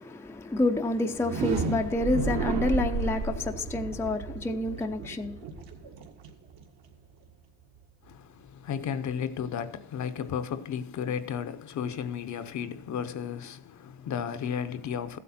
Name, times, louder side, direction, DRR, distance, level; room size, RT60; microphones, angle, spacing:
voice 1, 0.0-5.3, left 2 dB, 5° left, 0.6 m, -28 dB
sound 1, 1.1-7.0, right 4 dB, 60° right, 1.9 m, -32 dB
voice 2, 8.0-15.2, left 8 dB, 40° left, 0.8 m, -34 dB
14.5 x 8.4 x 4.2 m
cardioid pair, 115°, 43 cm